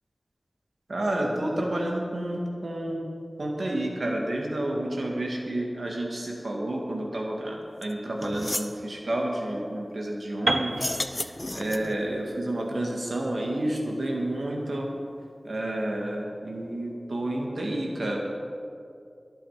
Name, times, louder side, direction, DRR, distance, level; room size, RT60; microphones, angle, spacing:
voice 1, 0.9-3.0 3.4-14.9 15.4-18.2, right 1 dB, 80° right, -1 dB, 2.1 m, -30 dB
sound 1, 7.8-7.9 8.2-8.8 10.7-12.0, left 1 dB, 30° left, 0.7 m, -32 dB
Piano, 10.5-14.4, right 1 dB, 45° right, 0.8 m, -32 dB
22.5 x 7.8 x 5.0 m, 2.5 s
wide cardioid pair, 45°, 0 cm